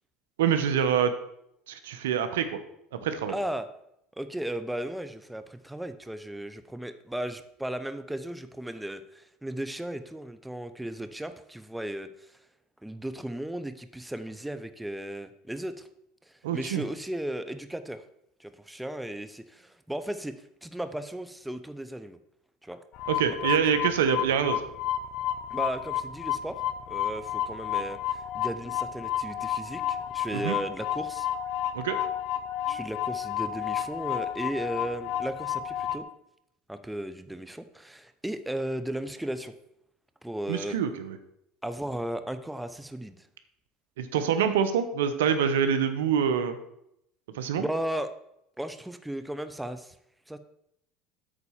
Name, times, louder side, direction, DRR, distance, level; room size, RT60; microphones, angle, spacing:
voice 1, 0.4-1.1 1.7-2.6 3.0-3.3 16.4-16.8 23.1-24.6 30.3-30.5 31.7-32.0 40.5-41.2 44.0-46.6 47.3-47.7, right 8 dB, 85° right, 10 dB, 0.9 m, -25 dB
voice 2, 3.3-3.7 4.2-12.4 12.8-15.9 16.3-18.0 18.4-22.2 22.6-22.8 23.2-23.5 25.5-26.6 26.9-31.3 32.7-36.1 36.7-39.5 40.2-40.8 41.6-43.3 47.6-48.1 48.6-49.9 50.3-50.4, right 1 dB, 5° right, 10 dB, 0.8 m, -35 dB
sound 1, 22.9-36.0, left 10 dB, 60° left, 0.7 m, -31 dB
8.6 x 4.2 x 7.2 m, 0.77 s
supercardioid pair, 90°, 0 cm